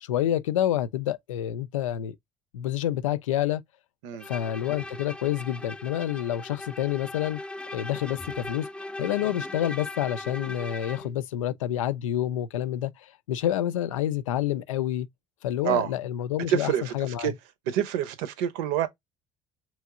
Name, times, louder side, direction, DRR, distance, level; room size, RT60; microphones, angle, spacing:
voice 1, 0.0-2.2 2.5-3.6 4.2-7.4 7.7-8.7 9.0-15.1 15.4-17.3, left 12 dB, 85° left, 0.4 m, -28 dB
Bowed string instrument, 4.2-11.1, left 2 dB, 5° left, 0.3 m, -39 dB
voice 2, 16.5-17.3 17.7-18.9, right 10 dB, 70° right, 0.7 m, -27 dB
3.4 x 3.1 x 3.5 m
hypercardioid pair, 60°, 16 cm